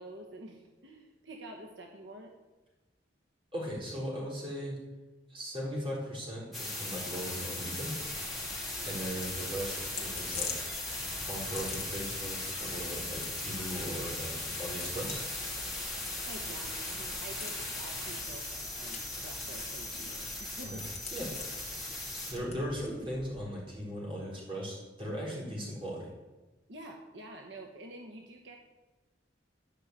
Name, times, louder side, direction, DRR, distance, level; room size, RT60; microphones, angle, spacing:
voice 1, 0.0-2.3 8.8-9.0 16.2-21.0 21.9-22.0 26.7-28.6, right 1 dB, 75° right, 2 dB, 1.2 m, -48 dB
voice 2, 3.5-4.7 5.3-7.9 8.8-10.5 11.3-15.2 20.7-20.8 21.1-21.3 22.3-26.1, equal, 30° right, -4 dB, 4.2 m, -38 dB
sound 1, 6.5-22.3, left 2 dB, ahead, 3.0 m, -38 dB
sound 2, 8.3-23.5, left 5 dB, 35° left, 1.9 m, -47 dB
12.5 x 5.6 x 8.1 m, 1.2 s
head